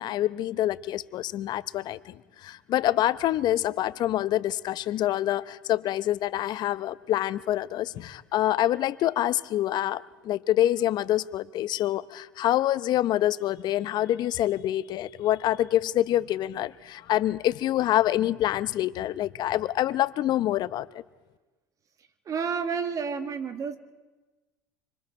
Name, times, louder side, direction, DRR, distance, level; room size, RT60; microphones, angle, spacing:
voice 1, 0.0-21.0, left 13 dB, 50° left, 16 dB, 0.8 m, -26 dB
voice 2, 22.3-23.8, right 6 dB, 40° right, 7 dB, 2.2 m, -30 dB
26.0 x 26.0 x 4.5 m, 1.2 s
hypercardioid pair, 80°, 9 cm